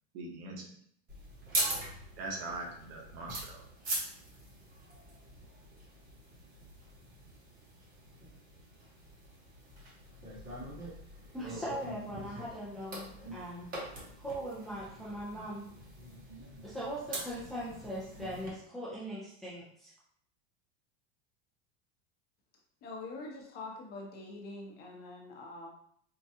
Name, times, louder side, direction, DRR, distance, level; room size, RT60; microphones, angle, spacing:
voice 1, 0.1-0.7 2.2-3.6, right 2 dB, 75° right, -1 dB, 1.3 m, -41 dB
sound 1, 1.1-18.5, right 1 dB, 25° right, 1.0 m, -42 dB
voice 2, 11.3-13.7 14.2-15.6 16.6-19.9, equal, ahead, -9 dB, 0.5 m, -40 dB
voice 3, 22.8-25.7, left 2 dB, 30° left, -1 dB, 0.9 m, -44 dB
4.6 x 2.3 x 2.8 m, 0.64 s
supercardioid pair, 160°, 32 cm